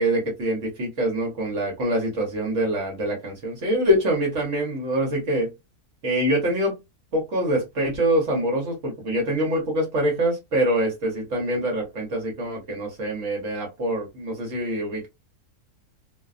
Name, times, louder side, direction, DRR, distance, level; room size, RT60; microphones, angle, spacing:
voice 1, 0.0-5.5 6.0-6.8 7.1-15.1, right 1 dB, 60° right, 0 dB, 1.2 m, -25 dB
2.7 x 2.2 x 2.3 m, 0.22 s
omnidirectional pair, 1.6 m